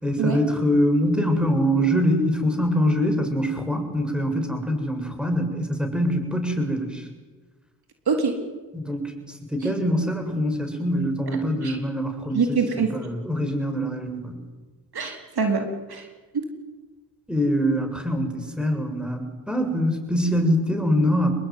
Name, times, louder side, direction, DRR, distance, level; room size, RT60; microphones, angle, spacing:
voice 1, 0.0-7.0 8.7-9.1 9.5-14.4 17.3-21.3, equal, ahead, 5 dB, 7.3 m, -24 dB
voice 2, 8.1-8.4 9.6-9.7 11.6-11.8 12.3-12.9 14.9-16.0 16.3-16.5, right 5 dB, 60° right, 4 dB, 4.2 m, -24 dB
27.5 x 21.5 x 9.6 m, 1.3 s
cardioid pair, 65°, 42 cm